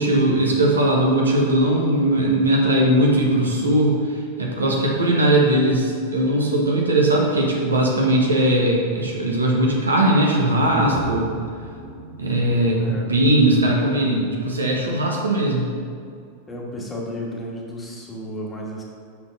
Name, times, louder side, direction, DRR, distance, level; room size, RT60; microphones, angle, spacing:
voice 1, 0.0-4.0 4.4-11.3 12.2-15.7, right 1 dB, 75° right, -2 dB, 1.3 m, -19 dB
sound 1, 10.4-14.5 14.8-14.9, equal, 80° left, 1.8 m, -36 dB
voice 2, 16.5-18.8, equal, 15° left, -2 dB, 1.5 m, -33 dB
6.0 x 5.9 x 5.6 m, 2.2 s
figure-of-eight pair, 90°, 0 cm